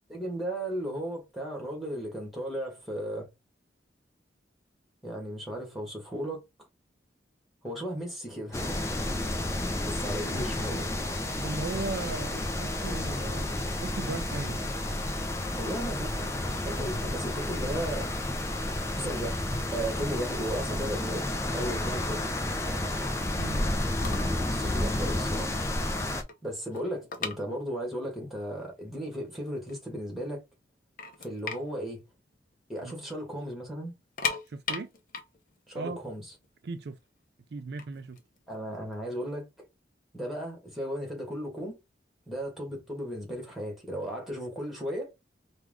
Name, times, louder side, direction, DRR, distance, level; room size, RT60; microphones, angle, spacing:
voice 1, 0.1-3.3 5.0-6.4 7.6-9.0 9.8-10.9 15.5-16.4 16.6-18.4 18.9-19.4 19.7-22.3 24.2-25.6 26.4-30.4 31.2-32.0 32.7-33.9 35.7-36.2 38.5-39.7 40.1-41.8 42.3-45.1, right 1 dB, ahead, 1.6 m, -35 dB
sound 1, 8.5-26.2, left 1 dB, 15° left, 0.5 m, -31 dB
voice 2, 11.4-14.6 23.3-23.7 32.8-32.9 34.5-34.9 35.7-36.0 36.6-37.0 37.5-38.2, right 3 dB, 60° right, 0.4 m, -37 dB
sound 2, 24.0-24.4 24.7-24.9 25.4-25.5 25.8-28.1 28.3-28.4 29.1-29.2 29.5-30.3 30.6-30.7 31.0-33.0 33.2-33.4 33.9-36.9 37.6-39.3, left 5 dB, 50° left, 0.8 m, -37 dB
4.6 x 2.4 x 3.6 m
head